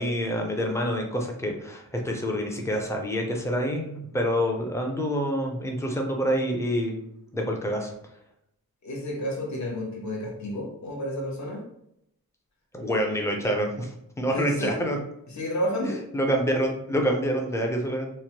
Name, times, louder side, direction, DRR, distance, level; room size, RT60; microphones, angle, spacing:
voice 1, 0.0-7.0 7.3-7.9 12.7-15.0 15.8-18.1, equal, 10° left, 1 dB, 0.4 m, -27 dB
voice 2, 8.8-11.6 14.3-14.8 15.3-16.0, equal, 55° left, -1 dB, 0.8 m, -30 dB
3.0 x 2.1 x 2.8 m, 0.77 s
wide cardioid pair, 120°, 35 cm